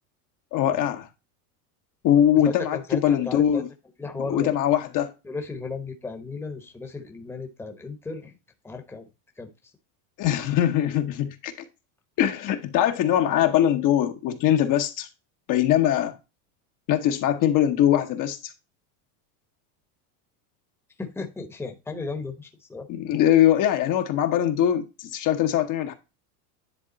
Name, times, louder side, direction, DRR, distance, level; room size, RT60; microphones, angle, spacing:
voice 1, 0.5-1.0 2.0-3.7 4.3-5.1 10.2-11.5 12.2-15.1 15.5-16.1 16.9-18.5 22.9-25.9, left 11 dB, 40° left, 1.0 m, -22 dB
voice 2, 2.4-3.6 4.0-4.5 5.2-8.4 8.6-9.1 9.4-9.5 21.0-22.9, left 4 dB, 5° left, 1.0 m, -35 dB
10.5 x 3.6 x 3.9 m
supercardioid pair, 135°, 46 cm